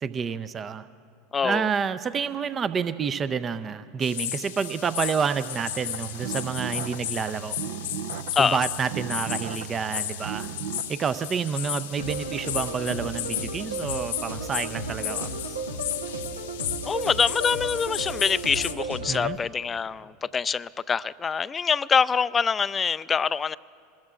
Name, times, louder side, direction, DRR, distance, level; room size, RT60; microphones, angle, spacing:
voice 1, 0.0-0.9 1.4-7.6 8.4-10.5 10.9-15.6 19.1-19.4, right 6 dB, 30° right, 13 dB, 0.5 m, -29 dB
voice 2, 1.3-1.7 8.4-8.6 16.9-23.6, left 6 dB, 25° left, 18 dB, 0.4 m, -25 dB
sound 1, 4.0-18.7, left 12 dB, 70° left, 0.9 m, -34 dB
sound 2, 5.6-10.8, right 8 dB, 70° right, 0.7 m, -36 dB
sound 3, 12.0-19.4, right 2 dB, 90° right, 1.1 m, -34 dB
27.0 x 21.0 x 2.5 m, 2.4 s
figure-of-eight pair, 80°, 0 cm